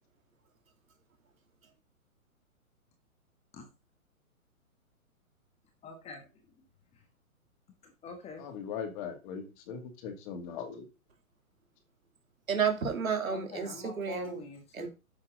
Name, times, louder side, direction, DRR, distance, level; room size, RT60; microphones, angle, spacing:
voice 1, 5.8-6.2 7.8-8.4 13.3-14.9, left 4 dB, 15° left, 1.2 m, -44 dB
voice 2, 8.4-10.8, left 7 dB, 35° left, 2.4 m, -39 dB
voice 3, 12.5-14.4 14.7-14.9, right 6 dB, 70° right, 2.9 m, -31 dB
9.8 x 7.2 x 3.8 m
figure-of-eight pair, 125°, 43 cm